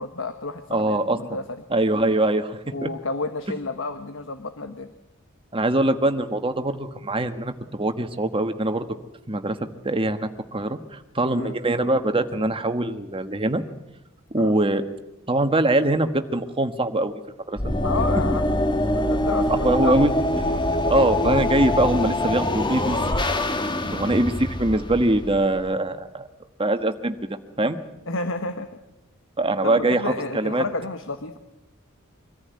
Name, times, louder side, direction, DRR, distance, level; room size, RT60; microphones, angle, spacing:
voice 1, 0.0-1.6 2.7-4.9 11.3-11.6 14.4-14.5 17.8-18.6 18.9-20.3 23.9-24.1 28.1-28.7 29.6-31.4, left 3 dB, 65° left, 9 dB, 1.3 m, -31 dB
voice 2, 0.7-1.2 1.7-2.9 5.5-8.8 9.3-9.6 9.8-13.6 14.3-14.8 15.3-17.1 17.5-17.6 19.5-20.4 20.9-23.2 23.9-26.3 26.6-27.1 27.6-27.8 29.4-30.6, right 2 dB, 25° right, 8 dB, 1.4 m, -23 dB
sound 1, 17.6-25.7, left 1 dB, 20° left, 1.5 m, -24 dB
24.0 x 14.0 x 9.5 m, 0.95 s
head